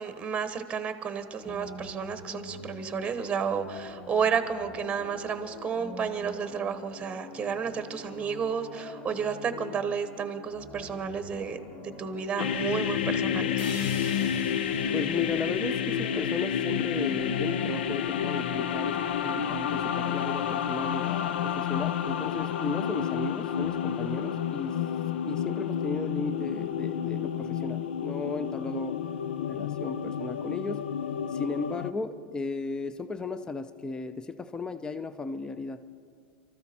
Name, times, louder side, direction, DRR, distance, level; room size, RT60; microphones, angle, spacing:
voice 1, 0.0-13.6, right 6 dB, 20° right, 10 dB, 1.1 m, -31 dB
sound 1, 1.4-17.7, left 2 dB, 50° left, 2.6 m, -45 dB
sound 2, 12.4-31.9, left 8 dB, 85° left, 0.6 m, -30 dB
sound 3, 13.6-17.6, left 3 dB, 70° left, 3.9 m, -46 dB
voice 2, 14.9-24.8 25.3-29.0 29.5-30.8 31.3-35.8, left 3 dB, 15° left, 11 dB, 0.6 m, -35 dB
24.0 x 13.5 x 4.3 m, 2.1 s
supercardioid pair, 115°, 5 cm